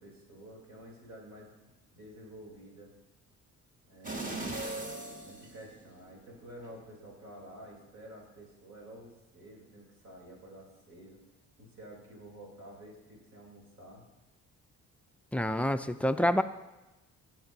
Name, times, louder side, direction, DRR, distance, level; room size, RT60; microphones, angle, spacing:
voice 1, 0.0-1.5 1.9-2.9 3.9-11.2 11.6-14.0, right 1 dB, 65° right, -2 dB, 3.6 m, -50 dB
sound 1, 4.0-6.2 6.6-6.7, right 2 dB, 25° right, 1.5 m, -38 dB
voice 2, 15.3-16.4, left 1 dB, 5° left, 10 dB, 0.3 m, -27 dB
13.0 x 7.8 x 2.8 m, 1.1 s
cardioid pair, 90°, 30 cm